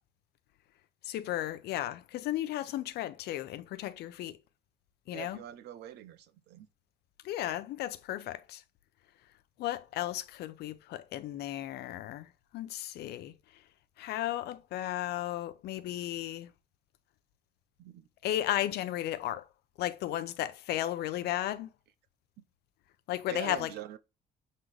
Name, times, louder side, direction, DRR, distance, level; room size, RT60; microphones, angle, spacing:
voice 1, 1.0-4.4 5.1-5.4 7.2-8.6 9.6-13.3 14.0-16.5 18.2-19.4 19.8-21.7 23.1-23.7, left 13 dB, 75° left, 0.7 m, -34 dB
voice 2, 5.1-6.7 17.8-18.0 23.3-24.0, right 11 dB, 75° right, 0.7 m, -44 dB
7.5 x 3.9 x 3.2 m
cardioid pair, 110°, 17 cm